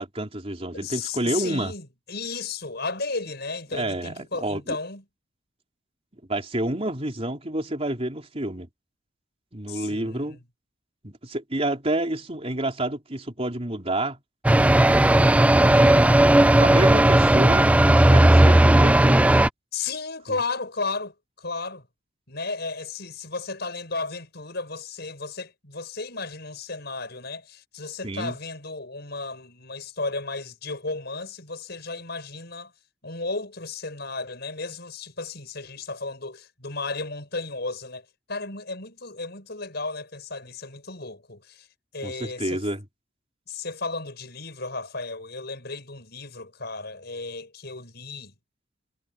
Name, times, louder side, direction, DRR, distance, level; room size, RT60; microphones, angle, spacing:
voice 1, 0.0-1.7 3.7-4.6 6.3-8.7 9.5-10.4 11.0-14.2 15.6-16.1 16.4-19.4 20.3-20.4 28.0-28.4 42.0-42.8, right 1 dB, 30° right, 3.8 m, -29 dB
voice 2, 0.7-5.0 9.7-10.4 19.7-21.9 22.3-32.7 33.0-41.7 41.9-42.6 43.5-48.3, left 3 dB, 55° left, 7.4 m, -34 dB
sound 1, 14.4-19.5, right 1 dB, 5° right, 0.3 m, -16 dB
head